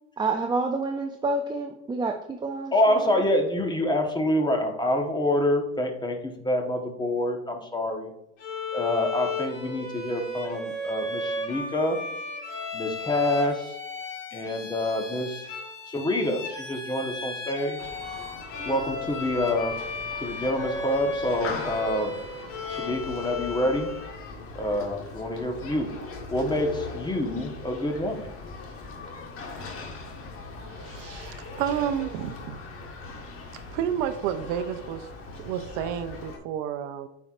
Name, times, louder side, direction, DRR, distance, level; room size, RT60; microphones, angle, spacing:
voice 1, 0.2-2.7, right 3 dB, 15° right, 4 dB, 0.4 m, -28 dB
voice 2, 2.7-8.1 8.7-12.0 12.7-13.7 14.3-15.5 15.9-17.8 18.7-19.8 20.2-22.1 22.7-23.9 24.5-25.9 26.3-28.3, left 1 dB, 10° left, 3 dB, 1.1 m, -27 dB
Bowed string instrument, 8.4-24.2, left 2 dB, 80° left, 2.2 m, -35 dB
Human group actions, 17.8-36.4, left 3 dB, 40° left, 1.4 m, -40 dB
voice 3, 30.7-32.6 33.7-35.1 35.4-37.1, right 9 dB, 60° right, 10 dB, 0.7 m, -30 dB
8.8 x 4.6 x 2.5 m, 0.84 s
hypercardioid pair, 95°, 36 cm